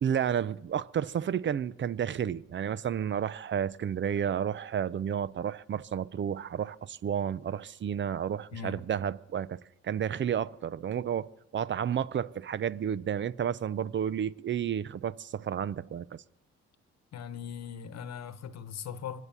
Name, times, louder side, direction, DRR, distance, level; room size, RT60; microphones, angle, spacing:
voice 1, 0.0-9.6 9.8-16.2, right 8 dB, 40° right, 0.5 m, -31 dB
voice 2, 17.1-19.2, left 7 dB, 60° left, 1.1 m, -39 dB
24.0 x 8.3 x 7.0 m
cardioid pair, 90°, 30 cm